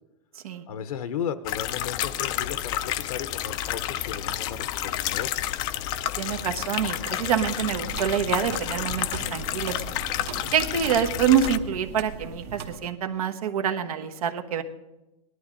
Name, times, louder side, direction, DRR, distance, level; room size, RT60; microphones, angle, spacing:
voice 1, 0.7-5.3, left 8 dB, 80° left, 11 dB, 0.7 m, -35 dB
sound 1, 1.4-11.6, left 12 dB, 25° left, 0.3 m, -30 dB
voice 2, 6.2-9.7 10.5-14.6, right 8 dB, 75° right, 7 dB, 1.3 m, -26 dB
sound 2, 7.6-12.8, right 6 dB, 45° right, 1.0 m, -39 dB
19.0 x 11.5 x 3.7 m, 0.98 s
supercardioid pair, 155°, 19 cm